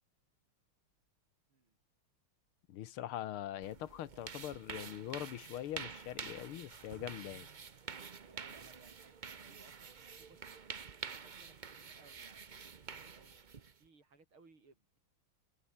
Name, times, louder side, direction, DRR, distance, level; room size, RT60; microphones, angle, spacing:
voice 1, 2.7-7.5, left 12 dB, 85° left, 1.9 m, -42 dB
sound 1, 3.6-13.8, right 6 dB, 55° right, 0.5 m, -48 dB
voice 2, 8.2-12.5 13.1-15.0, right 3 dB, 75° right, 5.6 m, -65 dB
omnidirectional pair, 2.3 m